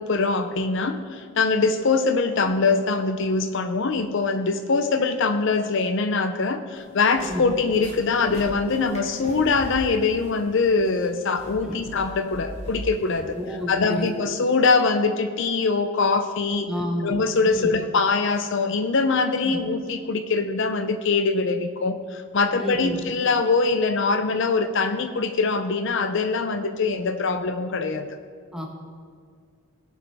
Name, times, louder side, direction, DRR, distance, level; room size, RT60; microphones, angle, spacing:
voice 1, 0.0-13.4 13.7-16.7 17.0-28.1, left 4 dB, 55° left, 9 dB, 0.5 m, -23 dB
sound 1, 6.8-14.2, equal, 30° left, 1.9 m, -40 dB
voice 2, 13.3-14.1 16.7-17.1 17.4-17.7 19.4-19.6 22.5-23.0 28.5-28.6, left 1 dB, 5° right, 0 dB, 1.4 m, -30 dB
18.5 x 7.2 x 3.5 m, 2.1 s
head